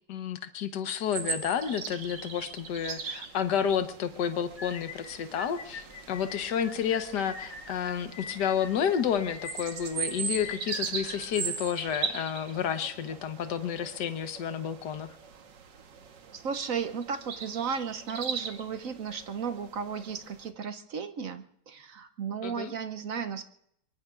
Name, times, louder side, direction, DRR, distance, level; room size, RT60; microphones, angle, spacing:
voice 1, 0.1-15.1 22.4-22.7, left 8 dB, 70° left, 9 dB, 1.7 m, -30 dB
sound 1, 1.1-20.5, right 6 dB, 90° right, 1.9 m, -40 dB
sound 2, 4.6-11.9, left 5 dB, 25° left, 1.9 m, -44 dB
voice 2, 16.3-23.5, right 6 dB, 60° right, 9 dB, 1.0 m, -34 dB
24.5 x 23.5 x 2.5 m, 0.71 s
omnidirectional pair, 1.9 m